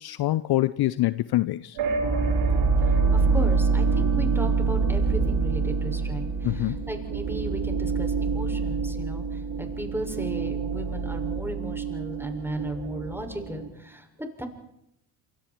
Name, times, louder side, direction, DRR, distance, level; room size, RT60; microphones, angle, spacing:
voice 1, 0.0-1.8 6.4-6.9, left 16 dB, 50° left, 0.8 m, -25 dB
sound 1, 1.8-13.7, right 4 dB, 60° right, 5.1 m, -26 dB
voice 2, 2.8-14.5, equal, 5° right, 6.7 m, -36 dB
27.5 x 25.5 x 4.7 m
hypercardioid pair, 55°, 48 cm